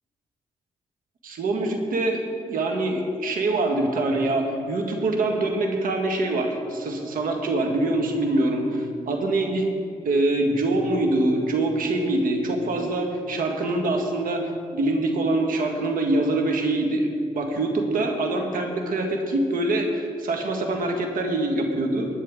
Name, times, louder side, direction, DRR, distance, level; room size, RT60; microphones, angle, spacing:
voice 1, 1.2-2.2 2.5-9.7 10.0-17.1 17.3-22.1, right 2 dB, 75° right, 3 dB, 1.7 m, -24 dB
18.0 x 9.9 x 3.7 m, 2.3 s
cardioid pair, 65°, 15 cm